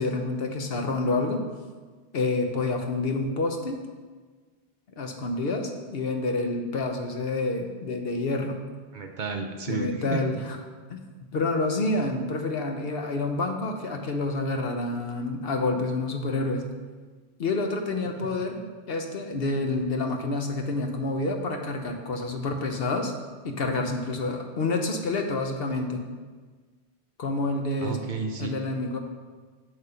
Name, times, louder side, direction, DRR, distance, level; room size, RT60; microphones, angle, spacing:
voice 1, 0.0-1.4 2.1-3.8 5.0-8.6 9.7-10.6 10.9-11.0 11.3-16.6 17.4-23.1 23.4-26.0 27.2-28.0 28.4-29.0, left 2 dB, 70° left, 4 dB, 1.0 m, -28 dB
voice 2, 8.9-10.2 27.8-28.6, right 4 dB, 55° right, 5 dB, 0.7 m, -32 dB
8.4 x 3.6 x 6.8 m, 1.4 s
omnidirectional pair, 1.1 m